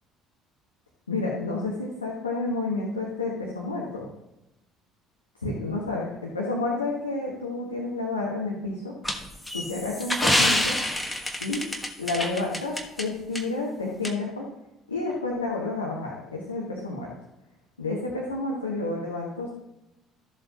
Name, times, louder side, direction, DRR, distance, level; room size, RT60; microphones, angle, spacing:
voice 1, 1.1-4.1 5.4-8.9 9.5-10.8 11.4-11.6 12.0-14.5 14.9-17.1 17.8-19.5, left 3 dB, 85° left, -2 dB, 1.4 m, -30 dB
sound 1, 9.0-13.0 13.4-13.5 14.0-14.1, left 1 dB, 10° left, 1.3 m, -26 dB
13.5 x 7.4 x 2.9 m, 0.92 s
figure-of-eight pair, 55°, 0 cm